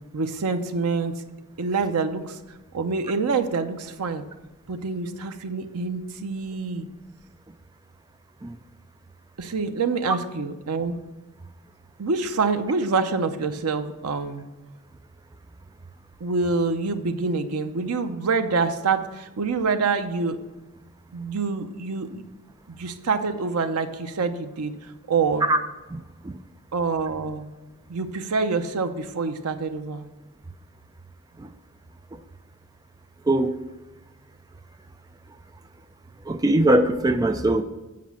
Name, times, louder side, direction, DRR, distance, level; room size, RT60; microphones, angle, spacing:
voice 1, 0.1-1.2 1.6-2.4 2.7-4.2 4.7-6.9 9.4-11.0 12.0-14.5 16.2-20.4 21.1-22.3 22.7-24.7 25.1-25.5 26.7-27.5 27.9-30.1, right 4 dB, 90° right, 7 dB, 0.7 m, -26 dB
voice 2, 25.9-26.3 31.4-31.5 32.1-32.2 33.3-33.5 36.3-37.6, right 1 dB, 15° right, 7 dB, 0.4 m, -21 dB
7.6 x 5.0 x 7.2 m, 1.1 s
head